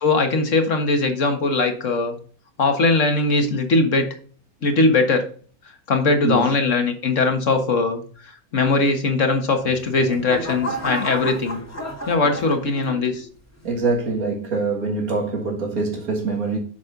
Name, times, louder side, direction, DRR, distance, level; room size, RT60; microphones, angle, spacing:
voice 1, 0.0-2.1 2.6-4.1 4.6-5.2 5.9-11.6 12.1-13.3, left 3 dB, 60° left, 1.8 m, -20 dB
sound 1, 9.6-13.2 13.7-14.1, equal, 10° left, 1.5 m, -32 dB
voice 2, 13.6-16.6, right 3 dB, 75° right, 2.2 m, -24 dB
9.3 x 6.4 x 2.6 m
omnidirectional pair, 1.5 m